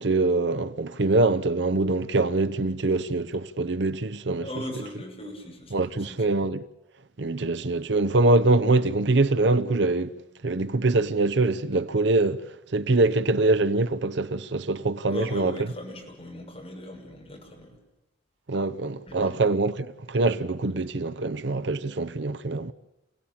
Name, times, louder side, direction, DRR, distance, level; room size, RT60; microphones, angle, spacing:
voice 1, 0.0-4.5 5.7-6.7 7.2-10.1 10.4-12.5 12.7-15.7 18.5-22.7, right 2 dB, 70° right, 0.8 m, -24 dB
voice 2, 4.4-5.8 6.1-6.2 15.1-17.8 19.1-19.4, left 1 dB, 30° left, 6.5 m, -39 dB
28.0 x 17.5 x 8.8 m
head